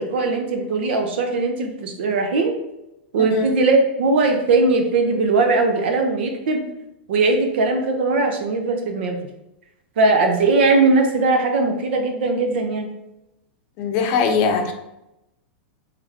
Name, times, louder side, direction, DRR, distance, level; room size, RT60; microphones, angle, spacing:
voice 1, 0.0-2.5 3.1-6.6 7.1-9.2 10.0-12.9, right 3 dB, 70° right, 4 dB, 0.8 m, -19 dB
voice 2, 3.2-3.5 13.8-14.7, left 5 dB, 40° left, 4 dB, 0.7 m, -21 dB
3.5 x 3.3 x 3.5 m, 0.90 s
supercardioid pair, 145°, 6 cm